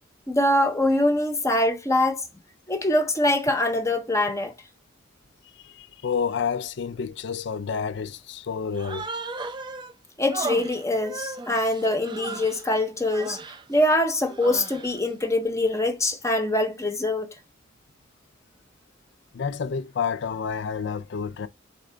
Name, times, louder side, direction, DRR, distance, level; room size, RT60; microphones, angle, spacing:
voice 1, 0.3-2.2 2.7-4.5 10.2-13.4 13.7-17.3, left 1 dB, 15° left, 0.6 m, -23 dB
voice 2, 5.6-9.1 19.3-21.5, left 6 dB, 65° left, 0.4 m, -29 dB
Human voice, 8.7-9.9 10.3-12.6 13.0-13.6 14.2-15.0, right 3 dB, 25° right, 0.4 m, -36 dB
4.3 x 3.3 x 3.8 m
head